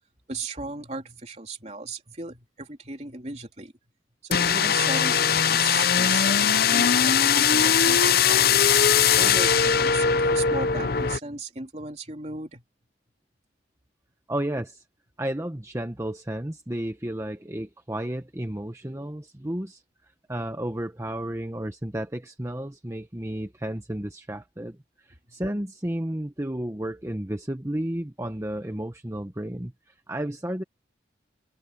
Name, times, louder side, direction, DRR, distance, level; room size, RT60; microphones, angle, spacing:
voice 1, 0.3-3.7 4.2-8.6 9.2-12.6, right 3 dB, 35° right, 3.4 m, -36 dB
sound 1, 4.3-11.2, left 7 dB, 55° left, 0.7 m, -20 dB
voice 2, 14.3-14.8 15.2-19.8 20.3-30.6, right 1 dB, 15° right, 0.9 m, -32 dB
open air
head